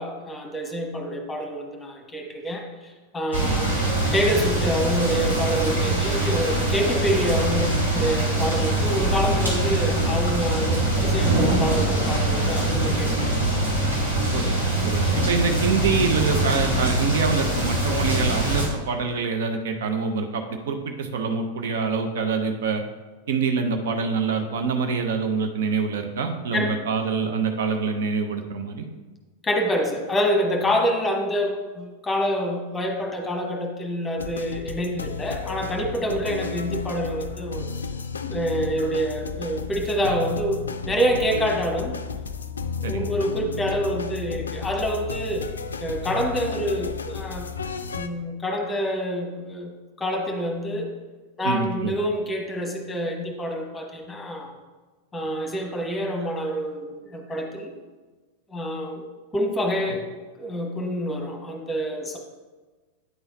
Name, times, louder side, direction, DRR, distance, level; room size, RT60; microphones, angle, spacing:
voice 1, 0.0-3.7 4.1-13.4 26.5-26.8 29.4-37.7 38.2-42.0 42.8-45.5 45.8-47.5 47.9-50.9 51.4-54.5 55.1-57.7 58.5-59.1 59.3-60.1 60.4-62.2, equal, 15° left, 3 dB, 1.1 m, -27 dB
sound 1, 3.3-18.7, right 1 dB, 85° right, 1.9 m, -23 dB
voice 2, 14.8-22.8 23.3-28.9 42.8-43.1 51.4-52.0, right 5 dB, 60° right, 5 dB, 0.6 m, -25 dB
sound 2, 34.2-48.1, left 5 dB, 70° left, 0.3 m, -33 dB
9.1 x 4.0 x 3.9 m, 1.3 s
figure-of-eight pair, 90°, 0 cm